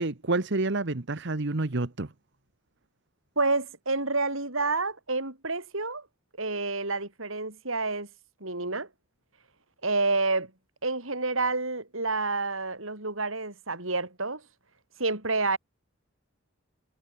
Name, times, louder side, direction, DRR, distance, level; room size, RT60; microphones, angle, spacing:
voice 1, 0.0-2.1, right 2 dB, 55° right, 1.2 m, -28 dB
voice 2, 3.4-6.1 6.4-8.1 8.4-8.9 9.8-10.5 10.8-14.4 15.0-15.6, right 3 dB, 75° right, 7.5 m, -29 dB
head